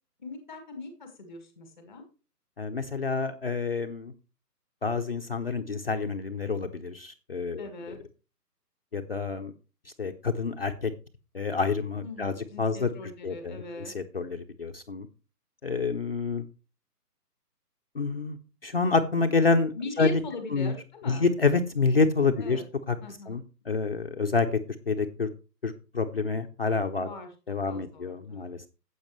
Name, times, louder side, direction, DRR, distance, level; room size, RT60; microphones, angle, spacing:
voice 1, 0.2-2.0 7.6-8.0 12.0-13.9 19.7-21.3 22.4-22.6 23.0-23.4 27.0-27.3 27.6-28.5, left 3 dB, ahead, 5 dB, 1.0 m, -41 dB
voice 2, 2.6-4.1 4.8-7.7 8.9-9.5 10.0-10.9 11.3-12.9 13.2-15.1 15.6-16.4 17.9-18.4 18.6-19.7 20.0-20.2 20.5-20.7 21.1-22.6 22.9-23.0 23.3-24.5 24.9-25.3 25.6-27.1 27.5-28.7, left 4 dB, 40° left, 4 dB, 0.7 m, -28 dB
12.0 x 8.2 x 3.1 m, 0.33 s
hypercardioid pair, 165°, 48 cm